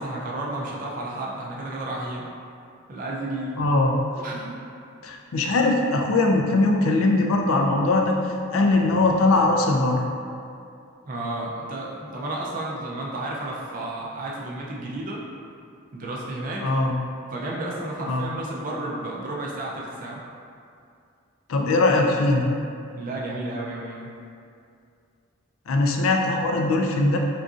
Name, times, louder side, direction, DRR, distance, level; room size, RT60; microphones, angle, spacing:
voice 1, 0.0-2.2 2.9-3.6 4.2-4.6 11.1-15.2 15.9-16.7 17.3-20.2 23.0-24.1, right 2 dB, 40° right, -3 dB, 0.4 m, -32 dB
voice 2, 3.6-3.9 5.0-8.2 8.5-10.0 16.6-16.9 18.1-18.3 21.5-22.5 25.7-27.2, left 2 dB, 75° left, 1 dB, 0.4 m, -21 dB
3.7 x 2.5 x 2.3 m, 2.4 s
head